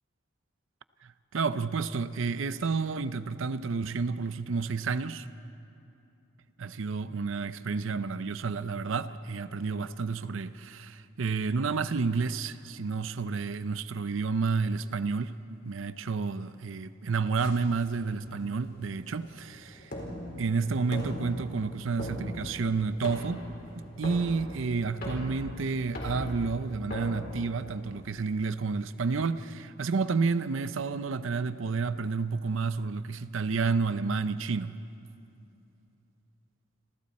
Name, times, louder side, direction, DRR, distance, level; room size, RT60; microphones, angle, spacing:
voice 1, 1.0-5.3 6.6-19.9 20.4-23.4 23.8-34.8, right 4 dB, 80° right, 0.6 m, -30 dB
sound 1, 17.4-28.0, left 1 dB, 50° left, 4.7 m, -40 dB
29.5 x 26.5 x 4.2 m
head